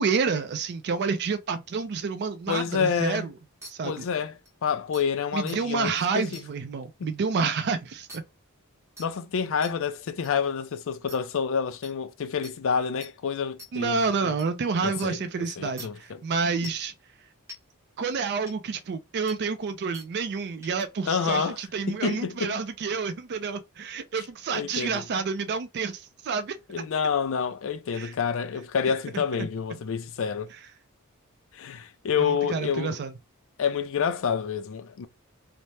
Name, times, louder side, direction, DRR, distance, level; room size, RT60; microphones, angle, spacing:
voice 1, 0.0-3.3 3.7-4.0 5.3-8.2 13.7-16.9 18.0-26.6 27.9-28.1 29.4-29.5 32.2-33.1, right 5 dB, 50° right, 0.4 m, -29 dB
voice 2, 2.5-3.3 3.8-4.4 4.6-6.4 7.0-7.1 9.0-14.3 14.8-15.2 15.6-16.2 21.1-21.6 21.9-22.6 24.5-25.0 26.7-30.5 31.5-33.0 33.6-35.1, left 6 dB, 60° left, 0.4 m, -28 dB
sound 1, 3.6-3.7 4.5-4.6 4.9-5.0 5.5-5.6 6.3-6.5 8.1-8.2 9.0-9.1 9.6-9.7 10.2-10.3 11.1-11.2 11.8-11.9 12.4-12.5 13.0-13.1 13.6-13.7 14.4-14.5 15.0-15.1 15.8-15.9 16.6-16.9 17.5-17.6 18.5-18.6 19.3-19.4 19.9-20.1 20.6-20.9, equal, 10° right, 0.9 m, -43 dB
2.7 x 2.0 x 3.1 m
head